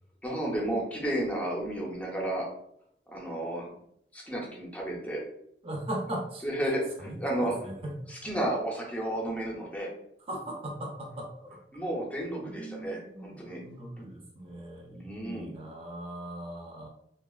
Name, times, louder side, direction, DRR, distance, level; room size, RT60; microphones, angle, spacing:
voice 1, 0.2-2.5 3.1-3.7 4.1-5.2 6.4-7.5 8.1-9.9 11.7-13.6 15.0-15.5, right 1 dB, 10° left, -2 dB, 0.6 m, -32 dB
voice 2, 5.6-6.4 7.0-8.1 10.3-11.6 12.4-16.9, right 1 dB, 35° right, 0 dB, 0.6 m, -39 dB
3.3 x 2.3 x 2.3 m, 0.71 s
head